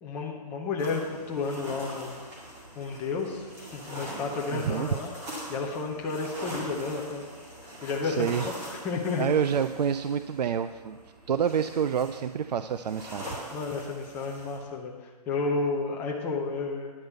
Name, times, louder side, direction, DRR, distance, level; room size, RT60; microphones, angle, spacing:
voice 1, 0.0-2.1 2.8-3.5 3.7-5.1 5.5-7.2 7.8-9.3 13.5-16.9, left 4 dB, 10° left, -1 dB, 0.6 m, -31 dB
sound 1, 0.8-14.6, equal, 15° right, 2.0 m, -42 dB
voice 2, 4.5-4.9 8.0-8.5 9.2-11.0 11.3-13.3, right 8 dB, 80° right, 11 dB, 0.5 m, -28 dB
10.0 x 5.3 x 8.0 m, 1.4 s
hypercardioid pair, 165°, 21 cm